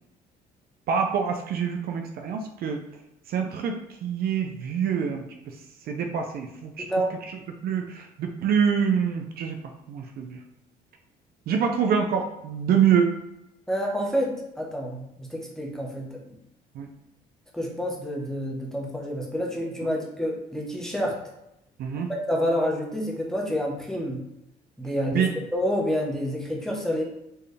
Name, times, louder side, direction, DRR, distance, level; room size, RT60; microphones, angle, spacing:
voice 1, 0.9-2.8 3.3-5.5 5.9-6.9 7.3-9.6 9.9-10.4 11.5-13.1 16.7-16.9 21.8-22.1 25.1-25.3, right 7 dB, 65° right, 4 dB, 0.6 m, -26 dB
voice 2, 6.8-7.1 13.7-16.3 17.5-21.2 22.1-24.2 24.8-27.0, equal, 5° left, -2 dB, 1.1 m, -28 dB
4.6 x 3.2 x 3.3 m, 0.84 s
cardioid pair, 110°, 17 cm